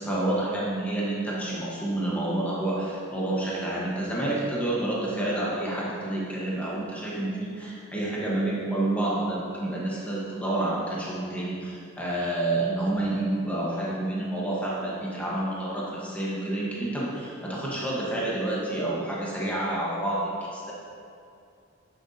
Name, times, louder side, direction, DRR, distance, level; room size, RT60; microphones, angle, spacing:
voice 1, 0.0-20.7, right 1 dB, 5° left, -6 dB, 1.1 m, -29 dB
10.5 x 6.4 x 2.7 m, 2.4 s
head